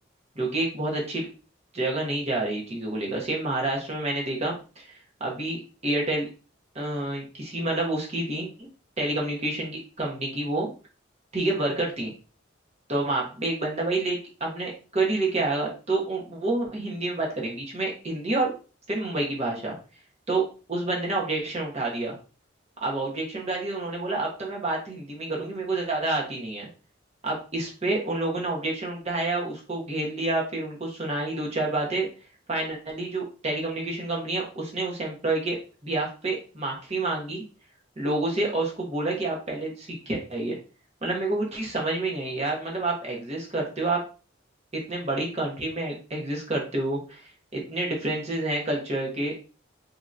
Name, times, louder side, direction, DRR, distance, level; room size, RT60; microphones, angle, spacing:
voice 1, 0.3-1.3 1.7-4.9 5.2-6.3 6.7-8.7 9.0-10.7 11.3-12.1 12.9-18.5 18.9-19.8 20.3-20.4 20.7-22.2 22.8-26.7 27.2-32.1 32.5-37.4 38.0-40.6 41.0-44.0 44.7-47.2 47.5-49.3, right 2 dB, 30° right, -2 dB, 1.1 m, -28 dB
3.5 x 2.9 x 2.6 m, 0.35 s
head